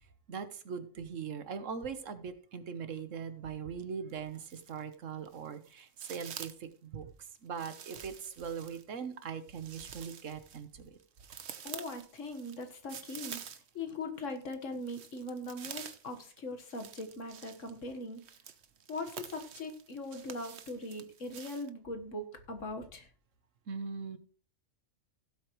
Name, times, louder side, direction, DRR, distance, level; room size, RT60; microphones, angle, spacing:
voice 1, 0.3-7.1 7.4-11.0 23.7-24.2, right 6 dB, 85° right, 10 dB, 1.4 m, -41 dB
sound 1, 4.1-4.9 5.3-6.7 7.6-13.9 14.2-21.7, right 8 dB, 65° right, 1.1 m, -48 dB
voice 2, 11.6-18.2 18.9-23.1, left 2 dB, 80° left, 5 dB, 1.9 m, -40 dB
16.5 x 8.0 x 3.1 m, 0.43 s
omnidirectional pair, 1.3 m